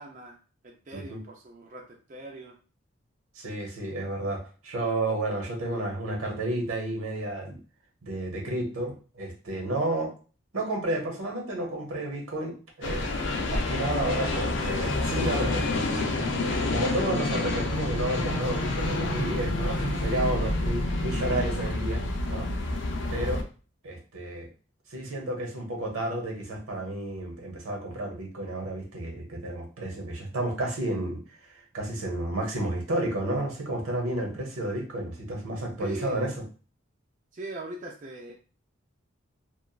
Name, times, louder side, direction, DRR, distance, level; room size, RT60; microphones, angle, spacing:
voice 1, 0.0-2.6 35.8-36.3 37.3-38.3, right 2 dB, 40° right, 0 dB, 0.4 m, -41 dB
voice 2, 3.3-7.6 8.0-10.1 10.5-13.1 13.5-16.3 16.7-22.0 22.3-22.5 23.1-23.4 23.8-24.5 24.9-36.3, right 1 dB, 90° right, 0 dB, 0.9 m, -31 dB
sound 1, 12.8-23.4, left 2 dB, 60° left, 0.4 m, -28 dB
2.9 x 2.3 x 2.3 m, 0.37 s
head